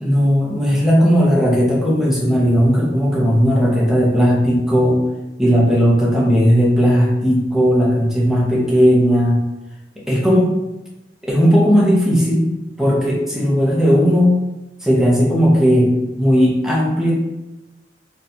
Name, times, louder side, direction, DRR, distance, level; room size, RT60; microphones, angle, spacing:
voice 1, 0.0-5.0 5.4-9.4 10.1-10.5 11.2-12.5 12.8-14.3 14.8-15.9 16.2-17.1, equal, 5° right, -3 dB, 0.6 m, -15 dB
4.1 x 2.2 x 2.7 m, 1.0 s
head